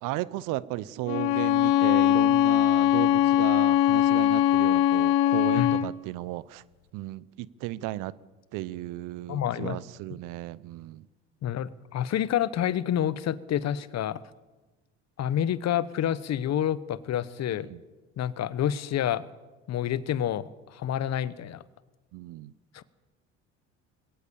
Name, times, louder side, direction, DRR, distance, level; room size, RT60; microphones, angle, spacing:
voice 1, 0.0-6.6 6.9-8.1 8.5-11.1 17.5-17.8 22.1-22.5, right 16 dB, 70° right, 20 dB, 0.9 m, -35 dB
Bowed string instrument, 1.1-5.9, left 12 dB, 85° left, 0.9 m, -21 dB
voice 2, 9.3-9.8 11.4-14.2 15.2-17.7 18.2-19.2 19.7-21.6 22.7-22.8, left 10 dB, 50° left, 17 dB, 1.1 m, -28 dB
21.0 x 18.0 x 7.1 m, 1.2 s
hypercardioid pair, 70°, 33 cm